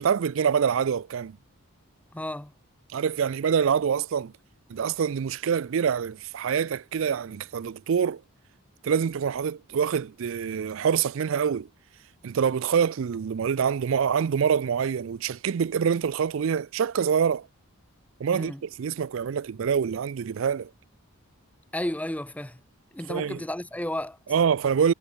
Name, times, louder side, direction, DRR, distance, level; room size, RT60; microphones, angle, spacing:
voice 1, 0.0-1.4 2.9-4.3 4.7-8.2 8.8-11.7 12.2-17.5 18.2-20.7 23.1-23.4 24.3-24.9, right 7 dB, 60° right, 0.4 m, -25 dB
voice 2, 2.1-2.5 18.3-18.6 21.7-22.6 22.9-24.2, left 1 dB, 5° left, 1.1 m, -32 dB
head